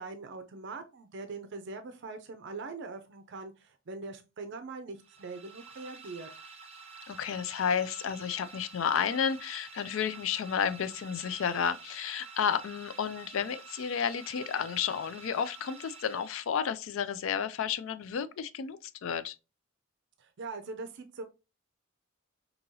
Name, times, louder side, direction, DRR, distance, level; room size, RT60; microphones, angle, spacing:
voice 1, 0.0-6.3 20.2-21.2, right 3 dB, 60° right, 0.5 m, -42 dB
sound 1, 5.0-16.9, right 5 dB, 30° right, 0.7 m, -49 dB
voice 2, 7.1-19.4, left 7 dB, 70° left, 0.4 m, -32 dB
5.3 x 2.8 x 2.7 m
head